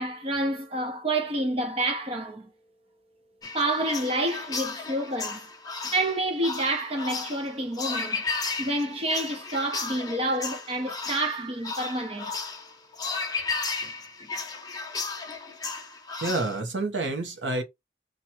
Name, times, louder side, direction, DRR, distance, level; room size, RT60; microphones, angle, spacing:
voice 1, 0.0-2.5 3.5-5.5 5.9-8.2 8.6-12.3, right 1 dB, 30° right, 0.7 m, -28 dB
sound 1, 3.4-16.6, left 4 dB, 20° left, 0.8 m, -34 dB
voice 2, 16.2-17.6, right 2 dB, 90° right, 1.1 m, -28 dB
3.0 x 2.6 x 4.3 m
head